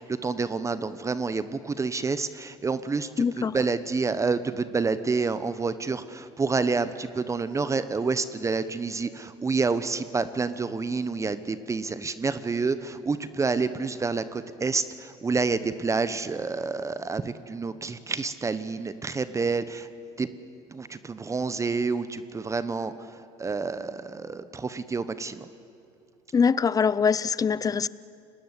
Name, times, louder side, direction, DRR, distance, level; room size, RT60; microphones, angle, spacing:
voice 1, 0.0-19.9 20.2-20.3 20.7-22.9 23.4-25.4, right 4 dB, 20° right, 1.0 m, -28 dB
voice 2, 3.2-3.6 26.3-27.9, left 6 dB, 25° left, 0.7 m, -23 dB
29.5 x 19.5 x 8.3 m
supercardioid pair, 95°, 13 cm